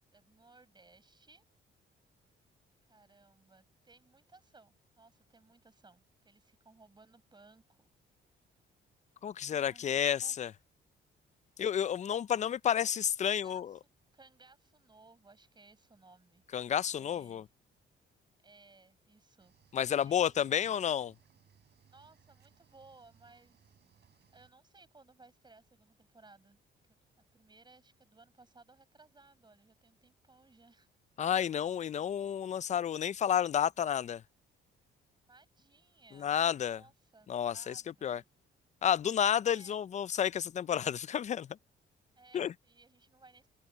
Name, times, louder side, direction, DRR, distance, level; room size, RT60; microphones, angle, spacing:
voice 1, 0.1-1.5 2.8-7.9 9.4-10.3 13.2-13.8 14.1-16.4 16.8-17.4 18.4-20.8 21.9-23.8 24.3-26.6 27.3-30.9 35.3-38.3 39.4-39.8 42.2-43.5, right 3 dB, 20° right, 7.6 m, -61 dB
voice 2, 9.2-10.5 11.6-13.7 16.5-17.4 19.7-21.1 31.2-34.2 36.2-36.8 37.3-38.2 38.8-41.5 42.3-42.5, left 9 dB, 35° left, 0.4 m, -31 dB
Cricket / Waves surf, 19.4-24.5, right 8 dB, 55° right, 6.8 m, -67 dB
open air
cardioid pair, 90°, 20 cm